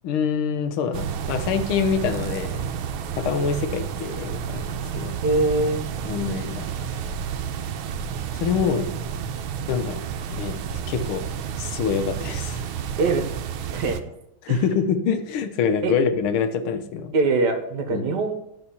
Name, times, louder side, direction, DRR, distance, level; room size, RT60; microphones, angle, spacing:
voice 1, 0.0-2.7 3.2-5.2 6.0-6.7 8.3-9.0 9.7-12.6 14.4-17.1 17.9-18.0, left 6 dB, 85° left, 9 dB, 1.7 m, -26 dB
sound 1, 0.9-14.0, right 8 dB, 80° right, 1.4 m, -30 dB
voice 2, 5.2-5.8 13.0-13.3 13.7-14.0 14.5-14.6 15.8-15.9 17.1-18.3, right 3 dB, 60° right, 6 dB, 1.7 m, -22 dB
11.0 x 4.2 x 7.0 m, 0.82 s
omnidirectional pair, 2.3 m